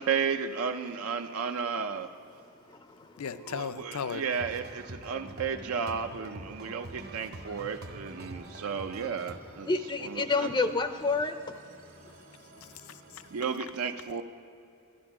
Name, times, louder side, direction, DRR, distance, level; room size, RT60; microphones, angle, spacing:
voice 1, 0.0-2.1 3.4-9.7 10.0-10.5 13.3-14.2, right 6 dB, 85° right, 0.5 m, -33 dB
voice 2, 2.5-3.2 6.6-6.7 8.2-8.7 9.7-11.5, left 3 dB, 20° left, 0.4 m, -30 dB
voice 3, 3.2-4.2 12.1-13.3, left 6 dB, 80° left, 0.5 m, -38 dB
sound 1, 3.6-13.5, right 2 dB, 70° right, 1.7 m, -56 dB
sound 2, 4.3-9.4, right 2 dB, 45° right, 0.8 m, -45 dB
12.0 x 10.0 x 6.0 m
head